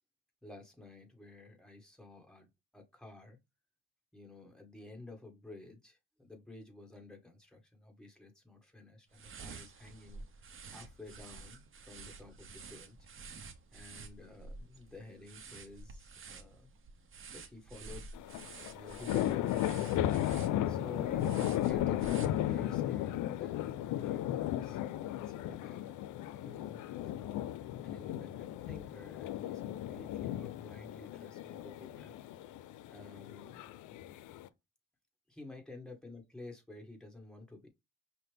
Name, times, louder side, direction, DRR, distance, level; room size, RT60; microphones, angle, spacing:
voice 1, 0.4-3.4 4.1-13.0 13.7-16.7 17.3-18.1 18.7-20.1 20.7-22.1 22.4-32.1 32.9-33.9 35.3-37.7, left 2 dB, ahead, 1.7 m, -52 dB
sound 1, 9.1-22.8, right 4 dB, 45° right, 0.8 m, -50 dB
sound 2, 18.1-34.5, left 12 dB, 80° left, 0.5 m, -35 dB
5.5 x 2.1 x 3.4 m
cardioid pair, 90°, 30 cm